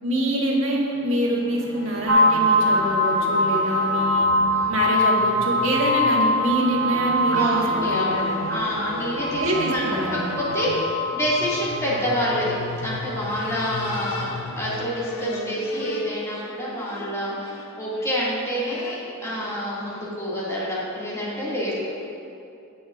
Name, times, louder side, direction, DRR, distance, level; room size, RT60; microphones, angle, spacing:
voice 1, 0.0-4.3 4.7-8.4 9.4-10.2 15.2-15.5, equal, 70° right, -3 dB, 1.9 m, -25 dB
sound 1, 1.2-20.3, left 2 dB, 90° left, 0.8 m, -37 dB
sound 2, 2.1-12.2, equal, 90° right, 1.1 m, -23 dB
voice 2, 7.3-12.5 12.8-14.3 14.6-19.0 19.2-21.8, equal, 15° left, -8 dB, 2.5 m, -27 dB
20.0 x 6.9 x 2.6 m, 2.6 s
head